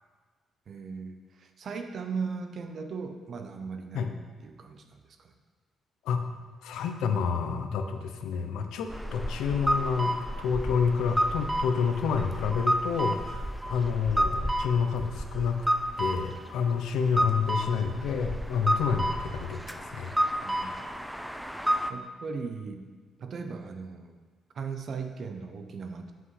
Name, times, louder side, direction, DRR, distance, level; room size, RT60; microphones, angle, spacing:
voice 1, 0.7-4.2 4.4-5.3 20.4-20.8 21.9-22.9 23.2-24.2 24.5-26.1, right 5 dB, 55° right, 7 dB, 0.6 m, -38 dB
voice 2, 6.6-15.6 16.0-20.4, left 6 dB, 85° left, 6 dB, 0.6 m, -29 dB
sound 1, 8.9-21.9, equal, ahead, 0.4 m, -30 dB
7.5 x 5.7 x 3.2 m, 1.5 s
cardioid pair, 90°, 0 cm